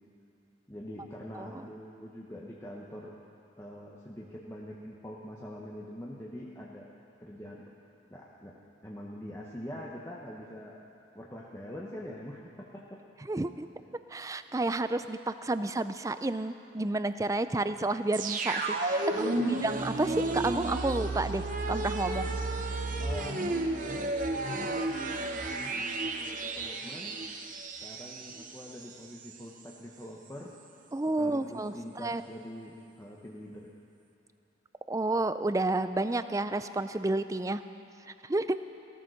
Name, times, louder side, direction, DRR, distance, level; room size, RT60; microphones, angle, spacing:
voice 1, 0.7-3.2 3.6-6.9 7.2-7.7 8.1-8.6 8.8-10.8 11.1-13.0 19.1-19.6 23.0-24.1 24.5-27.2 27.8-30.5 31.2-33.7, equal, 15° left, -4 dB, 1.1 m, -44 dB
voice 2, 1.3-1.7 13.3-13.7 14.1-19.3 19.6-22.3 30.9-31.7 32.0-32.2 34.9-37.6 38.2-38.6, right 2 dB, 15° right, 11 dB, 0.4 m, -30 dB
sound 1, 18.1-28.9 29.2-29.3, right 2 dB, 40° right, 0.9 m, -32 dB
16.0 x 13.5 x 6.4 m, 2.8 s
head